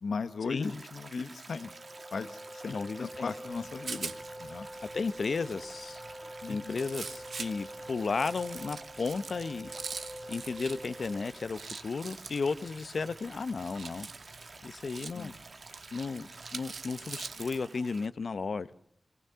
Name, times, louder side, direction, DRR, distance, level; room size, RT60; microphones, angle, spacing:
voice 1, 0.0-1.7 2.1-4.1 4.4-4.7 6.4-6.8 15.1-15.3, left 5 dB, 85° left, 1.1 m, -37 dB
Stream, 0.6-18.1, right 3 dB, 50° right, 1.6 m, -50 dB
Wind instrument woodwind instrument, 1.6-11.5, equal, 5° right, 2.2 m, -46 dB
voice 2, 2.7-3.3 4.8-6.0 6.5-9.7 10.0-14.1 14.6-15.4 15.9-18.7, left 4 dB, 65° left, 0.9 m, -34 dB
Rattle, 3.5-17.6, right 5 dB, 80° right, 1.1 m, -45 dB
24.0 x 19.0 x 6.9 m
wide cardioid pair, 110°, 0 cm